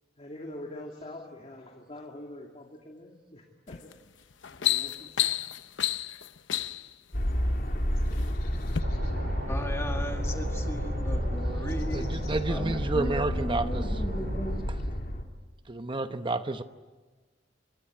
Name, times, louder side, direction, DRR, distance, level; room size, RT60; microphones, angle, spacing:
voice 1, 0.2-4.3 4.6-5.5, left 1 dB, 35° left, 1 dB, 2.5 m, -45 dB
sound 1, 3.7-3.9 4.3-6.9 7.7-8.3 8.7-8.8, left 12 dB, 75° left, 0.9 m, -30 dB
sound 2, 7.1-15.2, equal, 55° left, 3.3 m, -31 dB
sound 3, 8.8-14.6, equal, 70° right, 4.6 m, -35 dB
voice 2, 9.4-12.1 12.5-14.6, equal, 15° left, 3 dB, 1.7 m, -37 dB
voice 3, 11.9-13.9 15.7-16.6, right 2 dB, 25° right, 9 dB, 0.9 m, -30 dB
26.5 x 25.0 x 8.7 m, 1.3 s
head